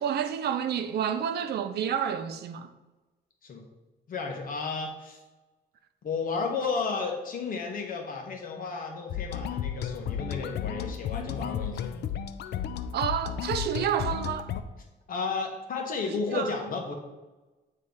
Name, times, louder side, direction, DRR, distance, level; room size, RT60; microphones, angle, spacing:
voice 1, 0.0-2.7 12.9-14.5 16.1-16.6, right 8 dB, 70° right, 0.5 m, -29 dB
voice 2, 4.1-5.2 6.0-12.0 15.1-16.9, left 4 dB, 55° left, 1.2 m, -33 dB
sound 1, 9.1-14.6, left 9 dB, 85° left, 0.4 m, -33 dB
8.6 x 3.2 x 3.9 m
cardioid pair, 150°, 17 cm